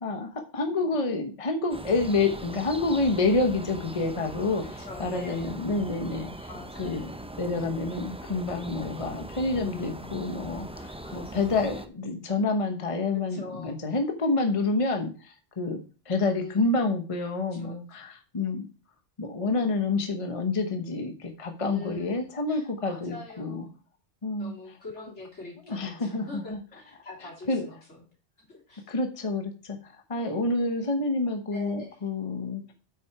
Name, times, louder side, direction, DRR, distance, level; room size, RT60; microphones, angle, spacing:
voice 1, 0.0-6.5 6.8-7.1 7.4-15.8 16.1-18.7 19.2-23.7 24.2-24.5 25.7-26.6 27.5-27.7 28.9-32.6, left 3 dB, 30° left, 5 dB, 1.0 m, -28 dB
sound 1, 1.7-11.9, right 1 dB, 10° right, 0.4 m, -40 dB
voice 2, 4.6-5.5 6.5-7.1 9.5-10.1 11.0-11.5 13.1-13.7 16.3-16.8 17.4-17.8 21.6-23.8 24.4-28.0 28.4-29.0 30.2-30.4 31.5-32.0, left 2 dB, 75° left, -2 dB, 3.7 m, -44 dB
8.7 x 6.0 x 4.7 m, 0.35 s
omnidirectional pair, 1.2 m